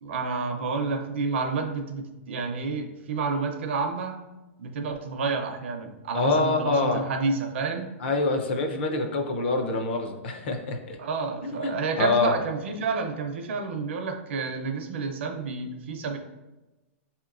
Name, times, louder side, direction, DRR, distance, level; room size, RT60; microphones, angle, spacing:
voice 1, 0.0-4.2 4.6-7.9 11.0-16.2, right 4 dB, 60° right, 4 dB, 0.5 m, -29 dB
voice 2, 6.1-7.0 8.0-11.0 11.4-12.3, left 3 dB, 50° left, 4 dB, 0.6 m, -26 dB
6.5 x 2.8 x 2.5 m, 1.1 s
supercardioid pair, 175°, 7 cm